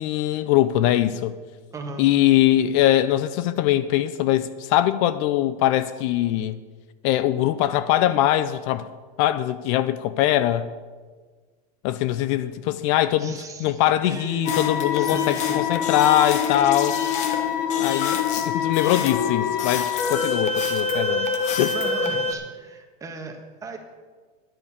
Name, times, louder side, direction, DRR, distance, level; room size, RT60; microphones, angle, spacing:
voice 1, 0.0-1.4 2.0-6.6 7.0-8.9 9.2-10.7 11.8-17.0 17.8-21.3 21.6-21.8, left 13 dB, 55° left, 0.5 m, -22 dB
voice 2, 1.7-2.0 13.2-15.6 21.7-23.8, right 4 dB, 15° right, 1.5 m, -37 dB
sound 1, 14.4-22.3, left 6 dB, 40° left, 1.2 m, -24 dB
10.5 x 6.9 x 8.4 m
supercardioid pair, 140°, 19 cm